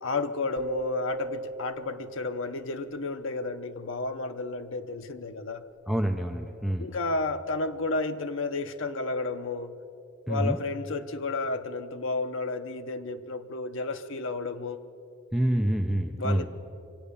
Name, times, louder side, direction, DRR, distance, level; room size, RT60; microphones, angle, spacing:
voice 1, 0.0-5.7 6.8-9.8 10.3-14.8 16.2-16.5, left 3 dB, 65° left, 7 dB, 0.8 m, -32 dB
sound 1, 0.6-2.8, right 2 dB, 65° right, 1.0 m, -37 dB
voice 2, 5.9-6.9 10.3-10.6 15.3-16.5, right 1 dB, ahead, 3 dB, 0.6 m, -27 dB
24.0 x 8.6 x 6.9 m, 2.6 s
head